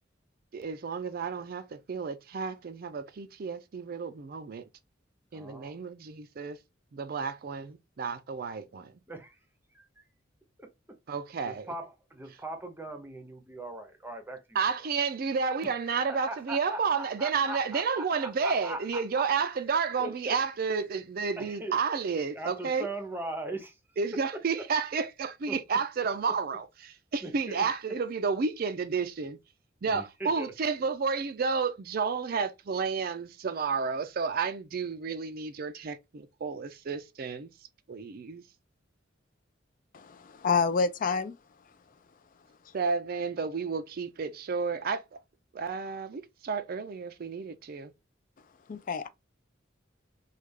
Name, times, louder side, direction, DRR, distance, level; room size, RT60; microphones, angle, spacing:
voice 1, 0.5-4.7 5.3-6.6 6.9-8.9 11.1-11.7 14.5-22.9 24.0-29.4 29.8-37.5 37.9-38.4 42.7-45.2 45.5-47.9, right 5 dB, 50° right, 0.4 m, -31 dB
voice 2, 5.3-5.8 9.1-9.4 9.7-9.9 10.6-10.7 11.4-14.4 15.9-19.2 20.0-20.4 21.4-21.7 22.3-23.7 24.6-24.7 25.5-26.1 27.2-27.7 29.8-30.5, right 2 dB, 10° right, 0.7 m, -40 dB
voice 3, 39.9-41.4 48.7-49.1, left 5 dB, 45° left, 0.3 m, -28 dB
3.2 x 2.3 x 3.4 m
head